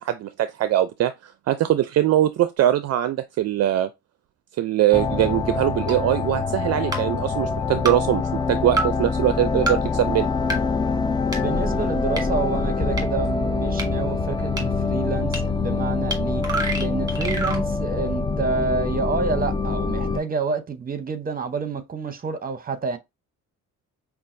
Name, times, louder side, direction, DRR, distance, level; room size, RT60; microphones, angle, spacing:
voice 1, 0.0-3.9 4.6-8.2 8.5-10.3, right 12 dB, 55° right, 0.4 m, -22 dB
sound 1, 4.9-20.2, left 4 dB, 15° left, 0.3 m, -25 dB
sound 2, 5.9-6.0 6.9-7.0 7.9-8.0 8.8-8.9 9.7-9.8 10.5-10.6 11.3-11.4 12.2-12.3 13.0-13.1 13.8-13.9 14.6-14.7 15.3-15.4 16.1-16.2 16.4-17.6, right 2 dB, 10° right, 1.4 m, -25 dB
voice 2, 11.4-16.4 16.8-23.0, right 4 dB, 30° right, 0.8 m, -28 dB
5.4 x 2.4 x 2.5 m
cardioid pair, 90°, 30 cm